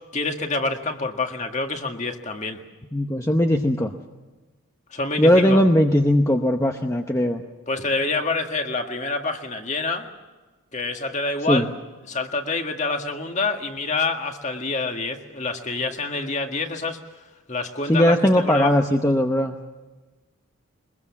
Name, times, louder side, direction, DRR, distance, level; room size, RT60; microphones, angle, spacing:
voice 1, 0.1-2.6 4.9-5.6 7.7-10.1 10.7-11.7 12.1-17.0 17.5-18.7, left 3 dB, 35° left, 4 dB, 1.8 m, -27 dB
voice 2, 2.9-3.9 5.2-7.4 11.5-11.6 17.8-19.6, left 1 dB, 15° left, 4 dB, 0.9 m, -19 dB
22.5 x 21.5 x 7.3 m, 1.2 s
head